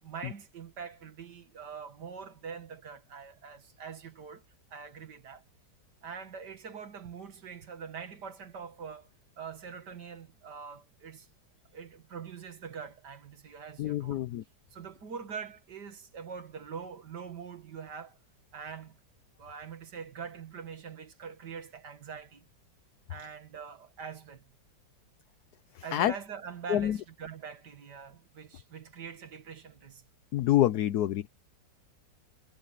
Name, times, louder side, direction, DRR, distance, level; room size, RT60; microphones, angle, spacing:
voice 1, 0.0-4.4 4.7-5.4 6.0-9.1 9.4-11.3 11.7-14.2 14.7-18.2 18.5-19.0 19.4-22.4 23.1-24.5 25.8-30.0, right 6 dB, 65° right, 2.5 m, -44 dB
voice 2, 13.8-14.4 25.8-26.1 26.7-27.0 30.3-31.3, left 13 dB, 65° left, 1.1 m, -27 dB
omnidirectional pair, 1.9 m